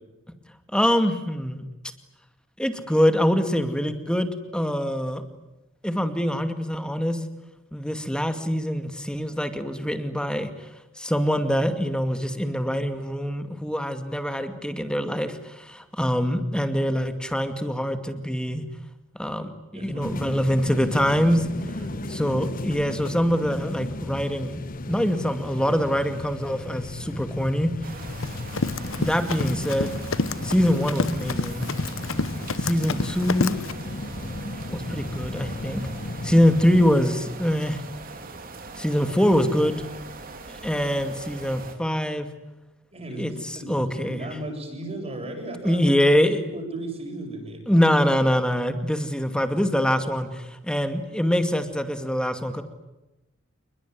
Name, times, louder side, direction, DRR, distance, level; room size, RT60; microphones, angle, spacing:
voice 1, 0.7-1.6 2.6-5.2 5.8-7.2 7.7-10.5 11.0-18.7 19.2-21.5 22.1-24.6 24.9-27.7 29.0-29.9 30.4-31.7 32.6-33.6 34.7-35.8 36.2-37.8 38.8-39.8 40.5-42.3 43.2-44.2 45.6-46.4 47.7-52.6, equal, 5° left, 8 dB, 2.3 m, -24 dB
voice 2, 19.7-20.1 21.7-22.4 42.9-45.9 46.5-47.8, right 2 dB, 30° right, 2 dB, 7.6 m, -36 dB
sound 1, 20.0-36.9, left 2 dB, 45° left, 1.0 m, -35 dB
sound 2, 27.8-41.7, right 3 dB, 45° right, 3.2 m, -41 dB
Run, 28.0-33.7, left 3 dB, 80° left, 0.9 m, -29 dB
28.0 x 22.0 x 9.6 m, 0.99 s
head